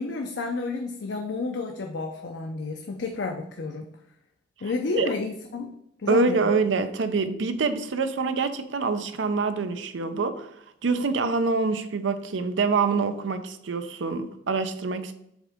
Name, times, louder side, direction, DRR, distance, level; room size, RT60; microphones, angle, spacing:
voice 1, 0.0-3.9 4.6-5.7 6.0-6.6, left 4 dB, 70° left, 2 dB, 0.6 m, -30 dB
voice 2, 6.1-10.5 10.8-15.1, right 4 dB, 90° right, 10 dB, 0.6 m, -25 dB
7.2 x 3.7 x 3.5 m, 0.76 s
head